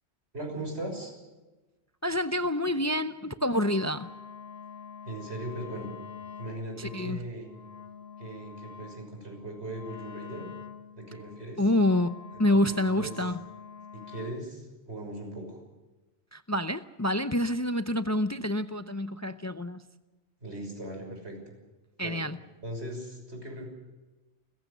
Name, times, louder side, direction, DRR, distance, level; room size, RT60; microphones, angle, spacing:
voice 1, 0.3-1.1 5.0-5.9 6.4-7.5 8.2-10.5 11.0-11.6 12.5-13.1 13.9-15.6 20.4-21.6 22.0-22.2 22.6-23.6, right 1 dB, 85° right, 2 dB, 6.4 m, -39 dB
voice 2, 2.0-4.1 6.8-7.2 11.6-13.4 16.3-19.8 22.0-22.4, left 1 dB, 20° left, 10 dB, 0.6 m, -27 dB
Wind instrument woodwind instrument, 3.5-14.5, left 7 dB, 70° left, 1.7 m, -46 dB
30.0 x 15.5 x 6.8 m, 1.1 s
omnidirectional pair, 1.1 m